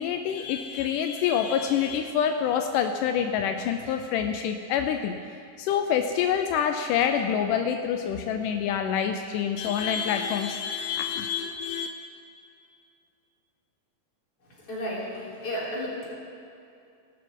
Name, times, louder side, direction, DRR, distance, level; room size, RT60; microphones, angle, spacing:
voice 1, 0.0-5.1 5.6-11.9, left 8 dB, 80° left, 6 dB, 1.9 m, -26 dB
voice 2, 14.7-15.0 15.4-16.1, equal, 40° left, -7 dB, 4.6 m, -32 dB
20.0 x 12.5 x 3.7 m, 2.5 s
omnidirectional pair, 4.3 m